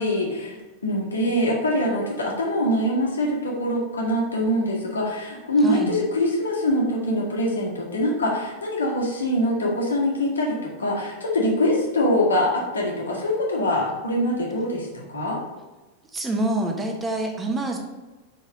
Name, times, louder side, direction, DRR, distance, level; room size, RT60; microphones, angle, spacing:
voice 1, 0.0-15.4, left 1 dB, 70° left, -1 dB, 1.5 m, -24 dB
voice 2, 5.6-6.0 16.1-17.8, right 1 dB, 15° right, 2 dB, 1.0 m, -26 dB
4.7 x 4.6 x 5.0 m, 1.2 s
figure-of-eight pair, 90°, 0 cm